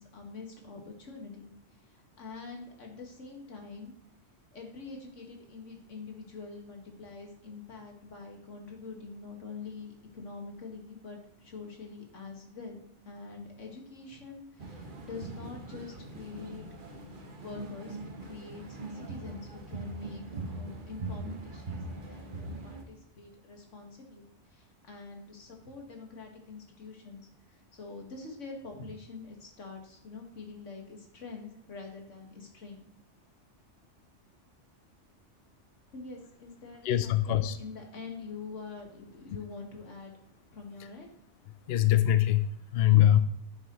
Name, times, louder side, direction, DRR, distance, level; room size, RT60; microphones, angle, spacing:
voice 1, 0.0-1.5 1.9-3.9 4.5-32.9 35.9-40.1 40.5-41.1, left 4 dB, 85° left, 1 dB, 2.1 m, -45 dB
sound 1, 14.6-22.8, right 2 dB, 45° right, 1.3 m, -41 dB
voice 2, 36.9-37.6 41.7-42.5 42.7-43.2, left 12 dB, 65° left, 12 dB, 0.7 m, -22 dB
11.0 x 6.6 x 3.1 m, 0.74 s
omnidirectional pair, 1.2 m